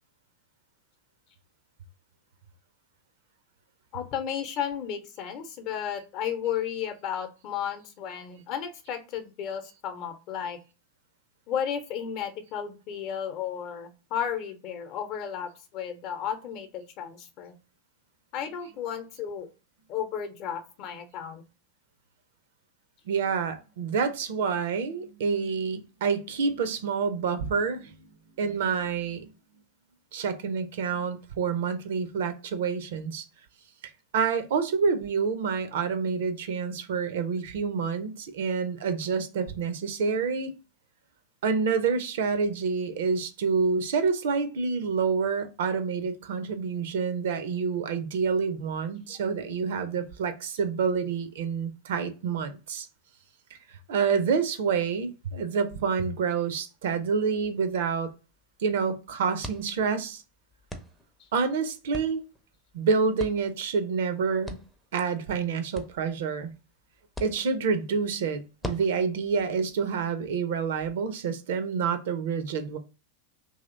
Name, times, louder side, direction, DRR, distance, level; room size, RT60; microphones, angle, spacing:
voice 1, 3.9-10.6 11.5-17.5 18.3-19.5 19.9-21.4 49.1-49.2 61.2-61.3, left 8 dB, 40° left, 0.8 m, -33 dB
voice 2, 23.1-27.9 28.4-29.3 30.1-33.2 33.8-40.5 41.4-52.9 53.5-58.1 58.6-60.2 61.3-62.2 62.7-64.6 64.9-66.5 67.2-72.8, right 5 dB, 55° right, 0.5 m, -28 dB
sound 1, 56.8-70.9, left 1 dB, 5° left, 0.6 m, -46 dB
2.9 x 2.7 x 3.7 m
figure-of-eight pair, 90°, 0 cm